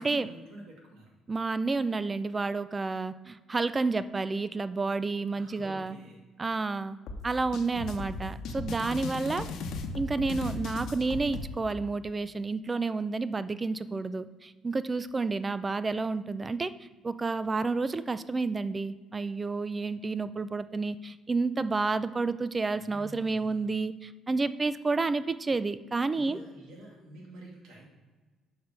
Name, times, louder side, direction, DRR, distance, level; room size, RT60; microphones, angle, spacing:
voice 1, 0.0-1.1 5.3-6.2 22.8-23.5 26.1-27.8, right 1 dB, 80° right, -1 dB, 2.1 m, -49 dB
voice 2, 1.3-6.0 6.4-7.0 7.2-9.5 10.0-16.7 17.0-26.4, right 3 dB, 20° right, 13 dB, 0.4 m, -30 dB
sound 1, 7.1-11.5, left 3 dB, 70° left, 0.9 m, -36 dB
6.5 x 5.2 x 5.7 m, 1.3 s
cardioid pair, 110°, 0 cm